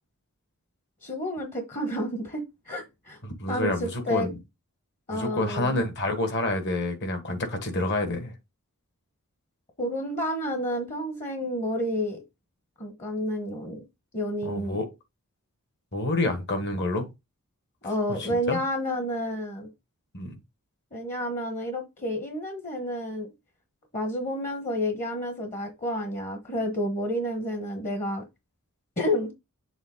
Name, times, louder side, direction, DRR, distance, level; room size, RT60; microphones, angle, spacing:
voice 1, 1.0-3.2 3.5-4.3 5.1-5.8 9.8-12.2 12.8-13.8 14.1-14.8 17.8-19.7 20.9-23.3 23.9-28.2 29.0-29.3, equal, 35° left, 1.1 m, -30 dB
voice 2, 3.2-4.4 5.1-8.3 14.4-14.8 15.9-17.1 17.8-18.6 20.1-20.3, left 2 dB, 50° left, 1.5 m, -28 dB
7.2 x 3.5 x 3.7 m
head